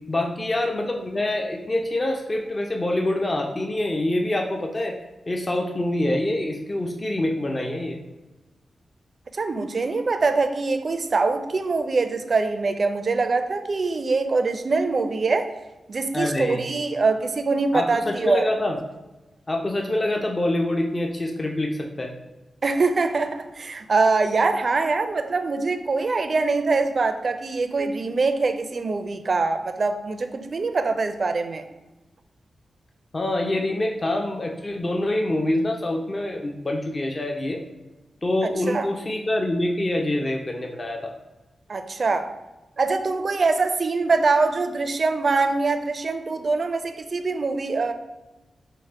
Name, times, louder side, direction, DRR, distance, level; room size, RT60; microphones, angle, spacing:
voice 1, 0.1-5.0 5.3-8.0 16.1-16.7 17.7-18.8 19.5-22.1 33.1-37.6 38.2-41.1, left 1 dB, 30° left, 1 dB, 0.5 m, -25 dB
voice 2, 9.3-15.5 15.9-18.5 22.6-31.6 38.7-38.9 41.7-42.3 42.8-47.9, right 3 dB, 50° right, 8 dB, 0.4 m, -23 dB
4.7 x 2.1 x 4.3 m, 1.1 s
cardioid pair, 80°, 0 cm